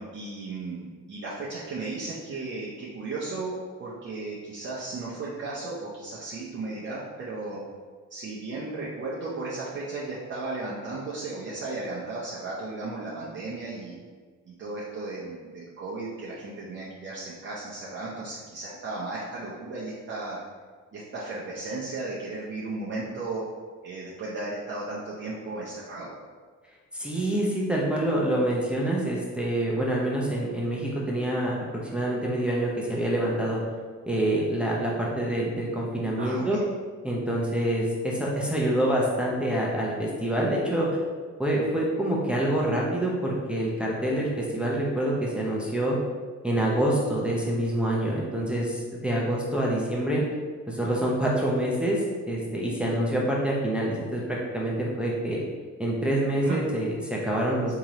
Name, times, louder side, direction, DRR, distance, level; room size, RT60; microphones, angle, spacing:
voice 1, 0.0-7.6 8.1-14.0 14.4-20.4 20.9-23.4 23.8-26.1 36.2-36.6 49.7-50.0 56.4-56.6, right 3 dB, 40° right, -7 dB, 0.7 m, -35 dB
voice 2, 26.9-31.5 31.9-33.6 34.1-36.6 37.0-41.0 41.4-46.0 46.4-50.2 50.7-55.4 55.8-57.8, right 1 dB, 5° right, -4 dB, 0.6 m, -26 dB
3.8 x 2.8 x 3.0 m, 1.5 s
cardioid pair, 90°, 30 cm